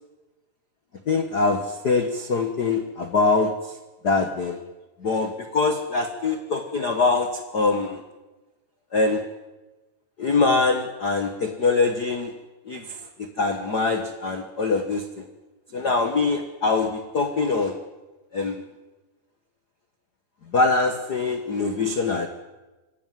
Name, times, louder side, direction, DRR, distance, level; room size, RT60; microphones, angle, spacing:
voice 1, 1.1-3.8 4.0-4.6 5.0-8.0 8.9-9.2 10.2-12.3 12.6-15.2 15.7-17.8 18.3-18.6 20.5-22.3, left 3 dB, 70° left, 7 dB, 0.9 m, -23 dB
25.5 x 15.5 x 9.3 m, 1.2 s
omnidirectional pair, 4.1 m